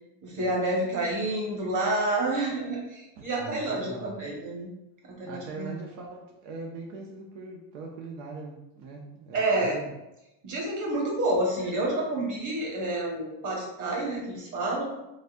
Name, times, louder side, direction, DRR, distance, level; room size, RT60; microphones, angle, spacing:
voice 1, 0.2-4.7 5.0-5.7 9.3-9.8 10.4-14.8, right 2 dB, 40° right, -2 dB, 1.5 m, -29 dB
voice 2, 3.2-4.2 5.2-9.9, right 3 dB, 85° right, -1 dB, 0.8 m, -41 dB
4.0 x 3.6 x 2.6 m, 0.94 s
supercardioid pair, 115°, 45 cm